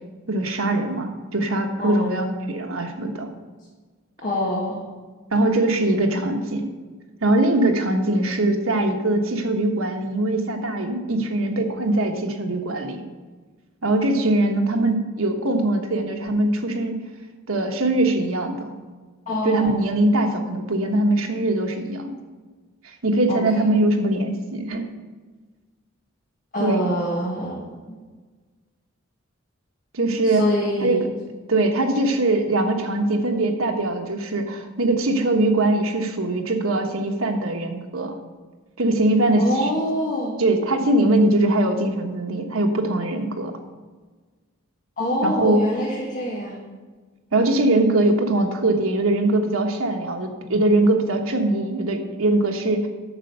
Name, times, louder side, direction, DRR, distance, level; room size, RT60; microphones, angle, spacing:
voice 1, 0.3-3.3 5.3-6.7 7.2-13.0 13.8-17.0 17.5-18.7 19.4-22.1 22.8-24.9 26.6-26.8 29.9-30.4 30.8-31.0 31.5-38.1 38.8-39.7 40.4-43.5 45.2-45.6 47.3-52.9, right 2 dB, 90° right, 4 dB, 1.4 m, -21 dB
voice 2, 1.8-2.2 4.2-4.8 19.3-19.8 23.3-23.6 26.5-27.6 30.2-31.0 39.3-40.4 45.0-46.6, left 1 dB, 40° left, -4 dB, 1.8 m, -25 dB
8.8 x 6.6 x 6.7 m, 1.4 s
head